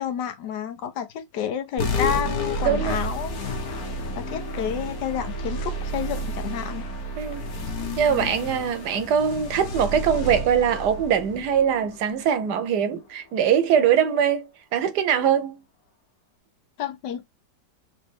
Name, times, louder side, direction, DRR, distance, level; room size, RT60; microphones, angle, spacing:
voice 1, 0.0-3.6 4.1-6.8 7.3-7.4 16.8-17.2, left 8 dB, 75° left, 1.3 m, -30 dB
sound 1, 1.8-12.6, equal, 60° left, 1.5 m, -31 dB
voice 2, 2.6-3.0 7.2-7.5 8.0-15.6, right 8 dB, 70° right, 1.2 m, -22 dB
4.0 x 2.9 x 3.7 m
omnidirectional pair, 1.9 m